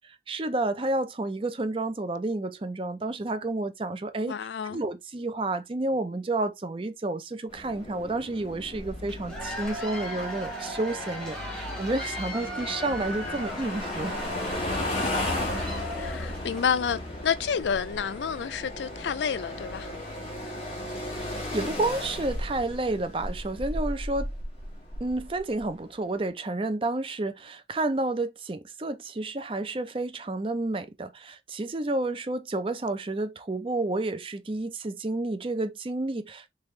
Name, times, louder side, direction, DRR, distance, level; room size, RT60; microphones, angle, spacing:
voice 1, 0.3-4.4 4.7-14.2 21.2-24.3 25.0-36.5, right 2 dB, 30° right, 0.5 m, -30 dB
voice 2, 4.3-4.8 16.0-19.9, left 7 dB, 85° left, 0.4 m, -29 dB
sound 1, 7.5-25.7, left 1 dB, 35° left, 1.5 m, -35 dB
Cheering / Applause / Crowd, 9.1-16.7, equal, 5° left, 1.3 m, -37 dB
3.5 x 3.4 x 3.1 m
head